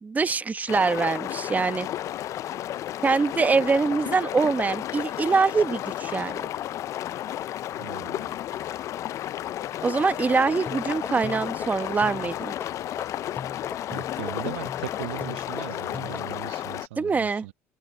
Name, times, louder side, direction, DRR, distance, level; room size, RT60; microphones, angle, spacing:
voice 1, 0.0-1.9 3.0-6.5 9.8-12.5 17.0-17.4, right 4 dB, 25° right, 1.4 m, -24 dB
sound 1, 0.7-16.9, left 12 dB, 50° left, 0.5 m, -33 dB
voice 2, 7.8-8.3 13.9-17.5, right 18 dB, 80° right, 0.7 m, -38 dB
sound 2, 10.3-16.3, left 5 dB, 25° left, 0.9 m, -40 dB
open air
hypercardioid pair, 75°, 6 cm